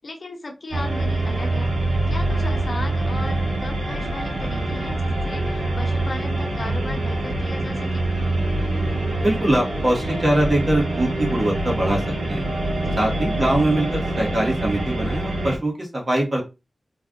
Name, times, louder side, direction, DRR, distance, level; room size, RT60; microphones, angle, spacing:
voice 1, 0.0-1.7 2.1-8.0 12.7-13.0, left 2 dB, 55° left, 4 dB, 0.8 m, -36 dB
sound 1, 0.7-15.6, right 2 dB, 75° right, 1.5 m, -25 dB
voice 2, 9.2-12.5 13.0-16.4, right 1 dB, 40° right, -2 dB, 1.6 m, -22 dB
3.3 x 2.4 x 3.7 m, 0.26 s
wide cardioid pair, 100°, 0 cm